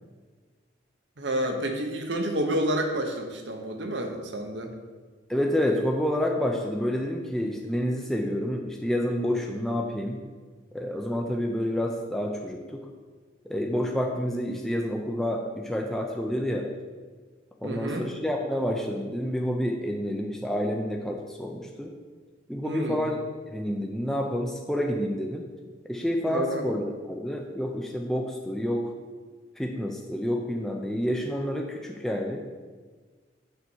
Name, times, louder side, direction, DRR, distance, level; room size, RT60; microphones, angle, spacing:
voice 1, 1.2-4.7 17.6-18.1 22.6-23.0 26.2-26.6, right 1 dB, 70° right, 4 dB, 1.0 m, -29 dB
voice 2, 5.3-10.2 10.7-12.9 13.4-16.7 17.6-21.9 22.5-23.2 23.5-25.4 25.9-28.9 29.6-32.4, equal, ahead, 1 dB, 0.5 m, -29 dB
6.8 x 4.2 x 6.3 m, 1.5 s
head